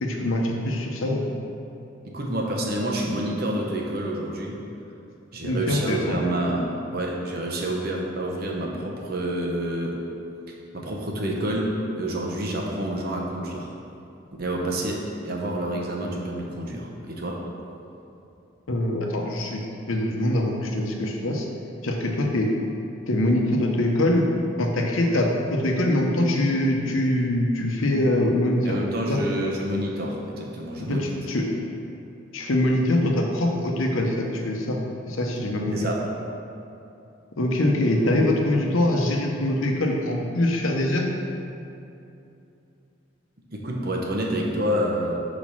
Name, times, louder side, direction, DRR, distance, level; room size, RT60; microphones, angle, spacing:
voice 1, 0.0-1.4 5.4-6.2 18.7-19.6 19.9-21.5 21.8-22.5 23.1-24.3 24.6-28.8 29.1-29.2 30.8-31.5 32.3-34.8 35.1-35.8 37.4-41.0, left 1 dB, 80° left, 1 dB, 0.8 m, -23 dB
voice 2, 2.0-4.7 5.3-10.0 10.7-13.7 14.4-17.5 28.7-31.1 35.7-36.1 43.5-45.3, right 1 dB, 50° right, -1 dB, 0.8 m, -28 dB
5.0 x 4.1 x 6.0 m, 2.8 s
head